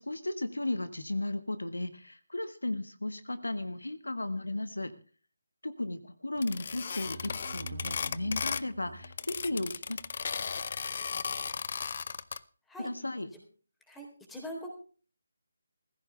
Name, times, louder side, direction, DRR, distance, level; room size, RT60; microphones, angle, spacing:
voice 1, 0.0-4.9 5.6-10.0 12.8-13.3, left 2 dB, 80° left, 10 dB, 1.6 m, -35 dB
sound 1, 6.4-8.7 9.0-12.4, left 5 dB, 45° left, 0.6 m, -35 dB
sound 2, 6.6-10.2, right 2 dB, 45° right, 1.9 m, -47 dB
voice 2, 13.9-14.7, equal, 5° left, 0 dB, 3.7 m, -42 dB
18.0 x 15.5 x 3.4 m, 0.39 s
figure-of-eight pair, 150°, 0 cm